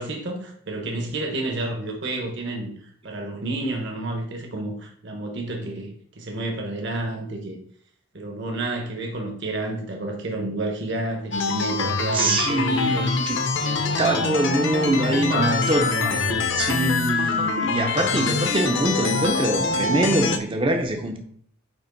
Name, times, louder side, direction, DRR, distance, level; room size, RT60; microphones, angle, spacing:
voice 1, 0.0-7.5 8.1-13.2 13.6-14.3 15.1-16.4, right 2 dB, 55° right, 1.1 m, -30 dB
sound 1, 11.3-20.4, left 4 dB, 55° left, 0.7 m, -24 dB
voice 2, 12.1-13.4 14.0-16.2 16.6-21.2, right 1 dB, 25° right, 0.5 m, -24 dB
8.8 x 3.0 x 3.9 m
head